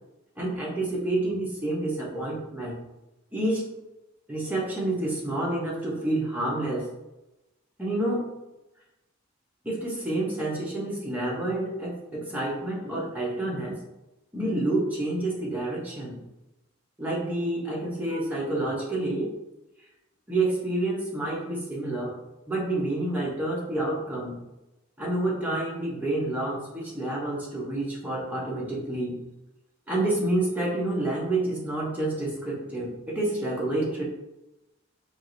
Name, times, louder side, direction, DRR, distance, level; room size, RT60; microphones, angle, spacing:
voice 1, 0.4-2.8 3.3-3.7 4.3-6.9 7.8-8.3 9.6-13.8 14.3-16.2 17.0-19.3 20.3-22.1 22.5-24.4 25.0-29.2 29.9-34.0, right 1 dB, 10° right, -4 dB, 0.7 m, -28 dB
4.6 x 3.0 x 2.6 m, 0.96 s
head